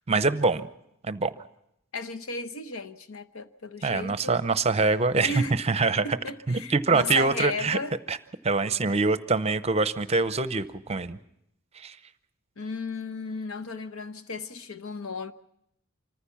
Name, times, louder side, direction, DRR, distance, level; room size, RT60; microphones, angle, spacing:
voice 1, 0.1-0.7 1.0-1.3 3.8-6.1 6.5-7.8 8.1-8.2 8.4-11.2 11.8-11.9, right 3 dB, 30° right, 0.7 m, -24 dB
voice 2, 1.9-4.4 5.2-5.6 6.0-8.0 12.6-15.3, left 3 dB, 70° left, 1.0 m, -34 dB
25.5 x 15.0 x 7.1 m
head